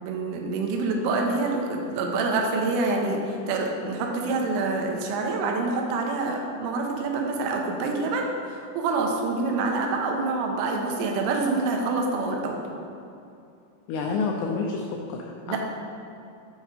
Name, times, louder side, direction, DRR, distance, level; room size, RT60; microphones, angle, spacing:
voice 1, 0.0-12.6 15.5-15.6, right 3 dB, 90° right, 1 dB, 3.1 m, -26 dB
voice 2, 13.9-15.6, left 4 dB, 85° left, 1 dB, 2.3 m, -29 dB
9.0 x 5.0 x 4.0 m, 2.6 s
omnidirectional pair, 5.2 m